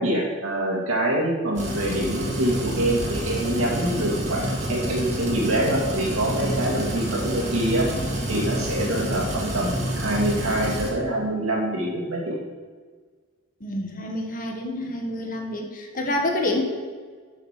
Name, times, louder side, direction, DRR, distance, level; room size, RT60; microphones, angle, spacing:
voice 1, 0.0-7.9 8.3-12.4, right 1 dB, 80° right, -2 dB, 2.2 m, -25 dB
sound 1, 1.6-10.9, right 1 dB, 35° right, 1.9 m, -28 dB
voice 2, 13.6-16.6, left 1 dB, 40° left, 2 dB, 1.3 m, -28 dB
8.0 x 5.7 x 5.9 m, 1.5 s
head